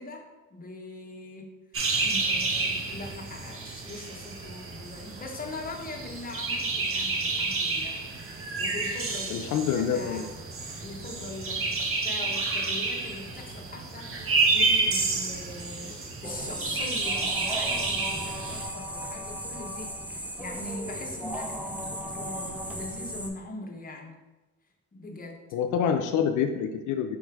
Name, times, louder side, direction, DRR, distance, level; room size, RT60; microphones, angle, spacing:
voice 1, 0.0-1.6 2.0-8.1 8.6-10.3 10.8-24.2 24.9-25.4, left 2 dB, 30° left, 1 dB, 0.9 m, -41 dB
sound 1, 1.7-18.7, right 3 dB, 45° right, 0.8 m, -30 dB
voice 2, 9.3-10.3 25.5-27.2, left 7 dB, 80° left, 6 dB, 0.5 m, -27 dB
sound 2, 16.2-23.3, equal, 5° right, 0.5 m, -36 dB
4.8 x 3.1 x 3.4 m, 1.1 s
cardioid pair, 90°, 30 cm